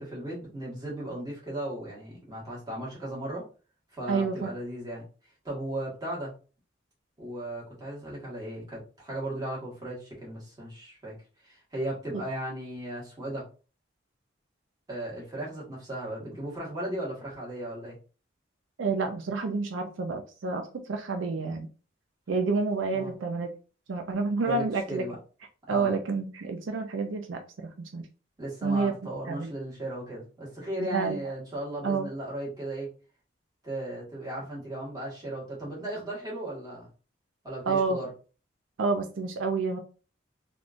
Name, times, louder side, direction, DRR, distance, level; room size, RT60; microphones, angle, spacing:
voice 1, 0.0-3.4 3.9-5.0 5.4-6.3 7.2-11.1 11.4-13.4 14.9-17.9 22.9-23.1 24.4-25.1 25.7-25.9 28.4-32.9 33.6-36.9 37.4-38.1, right 1 dB, 20° right, -6 dB, 1.5 m, -36 dB
voice 2, 4.1-4.5 12.1-12.2 18.8-21.7 22.3-23.5 23.9-25.0 25.7-28.0 28.6-28.9 29.3-29.5 30.8-31.2 31.8-32.1 37.7-38.0 38.8-39.8, right 4 dB, 80° right, 5 dB, 0.5 m, -29 dB
3.5 x 2.5 x 2.5 m, 0.36 s
head